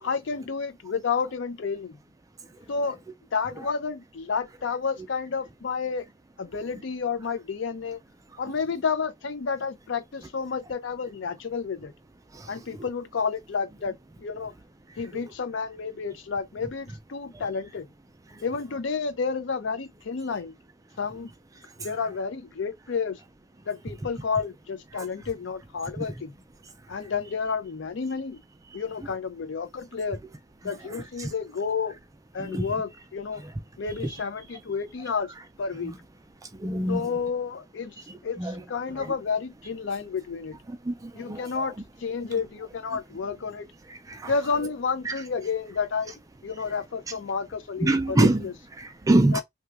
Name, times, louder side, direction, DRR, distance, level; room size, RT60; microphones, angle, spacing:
voice 1, 0.0-2.0 2.7-3.0 3.3-6.1 6.4-8.0 8.4-11.9 12.5-14.0 14.2-14.5 15.0-17.9 18.4-20.5 21.0-21.3 21.8-23.2 23.7-26.3 26.9-28.4 28.7-30.2 30.6-31.9 32.3-33.4 33.8-35.3 35.6-35.9 36.9-37.9 38.2-40.6 41.1-41.8 42.0-43.7 44.2-46.1 46.4-48.5 49.3-49.4, left 5 dB, 65° left, 0.5 m, -30 dB
voice 2, 36.6-37.1 38.4-38.6 40.7-41.4 44.1-44.3 45.1-45.2 47.8-48.4 48.8-49.4, right 1 dB, 15° right, 0.3 m, -24 dB
2.7 x 2.4 x 3.3 m
head